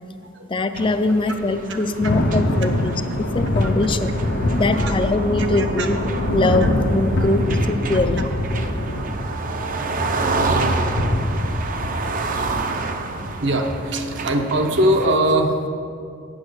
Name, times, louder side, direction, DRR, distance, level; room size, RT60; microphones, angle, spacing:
voice 1, 0.5-4.1 4.5-6.0 6.3-8.3, left 2 dB, 25° left, 9 dB, 0.4 m, -22 dB
sound 1, 0.7-15.1, right 3 dB, 45° right, 0.5 m, -29 dB
Thunder / Rain, 1.5-13.9, left 1 dB, 75° left, 0.7 m, -24 dB
voice 2, 4.5-4.9 5.5-5.9 8.2-8.3 8.8-8.9 11.3-11.5 13.4-15.6, right 1 dB, 65° right, 4 dB, 0.9 m, -22 dB
8.3 x 6.1 x 6.4 m, 2.5 s
head